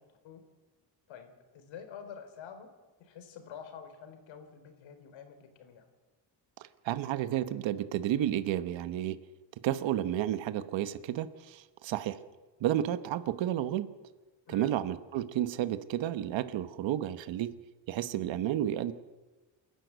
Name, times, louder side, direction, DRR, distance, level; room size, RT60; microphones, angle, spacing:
voice 1, 0.1-0.4 1.1-2.7 3.0-5.9 14.5-14.7, left 7 dB, 85° left, 7 dB, 4.0 m, -48 dB
voice 2, 6.8-9.2 9.6-12.2 12.6-13.9 14.5-17.5 17.9-18.9, right 12 dB, 80° right, 12 dB, 1.1 m, -31 dB
28.5 x 11.5 x 8.0 m, 1.3 s
cardioid pair, 145°, 45 cm